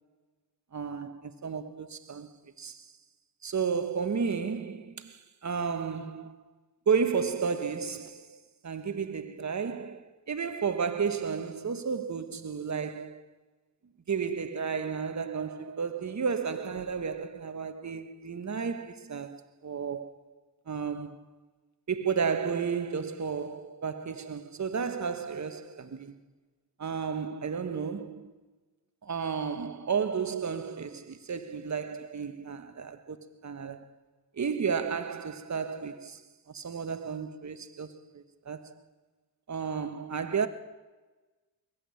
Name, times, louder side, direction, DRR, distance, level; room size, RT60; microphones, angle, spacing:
voice 1, 0.7-2.9 3.4-6.4 6.9-13.2 14.1-20.3 20.7-21.2 21.9-26.2 26.8-28.3 29.0-33.9 34.4-36.2 36.5-38.7 39.5-40.5, right 6 dB, 45° right, 1.3 m, -33 dB
21.5 x 8.6 x 7.0 m
cardioid pair, 55°, 41 cm